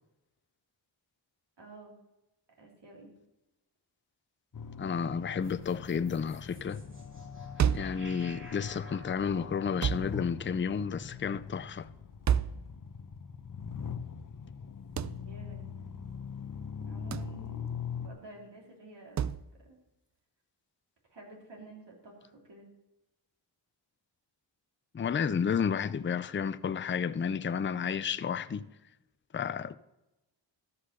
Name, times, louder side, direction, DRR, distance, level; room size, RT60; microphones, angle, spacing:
voice 1, 1.6-1.9 2.6-3.1 15.2-15.7 16.8-19.2 19.6-19.8 21.1-22.7, right 2 dB, 70° right, 3.4 m, -51 dB
sound 1, 4.5-18.1, left 6 dB, 45° left, 0.9 m, -42 dB
voice 2, 4.8-6.9 7.7-11.9 24.9-28.6 29.3-29.7, left 6 dB, 25° left, 0.4 m, -31 dB
sound 2, 5.4-11.7, left 3 dB, 25° right, 2.9 m, -51 dB
sound 3, 7.6-8.0 9.8-10.1 12.3-12.6 15.0-15.2 17.1-17.4 19.2-19.4, right 8 dB, 40° right, 0.4 m, -29 dB
13.0 x 5.7 x 6.6 m
wide cardioid pair, 65°, 44 cm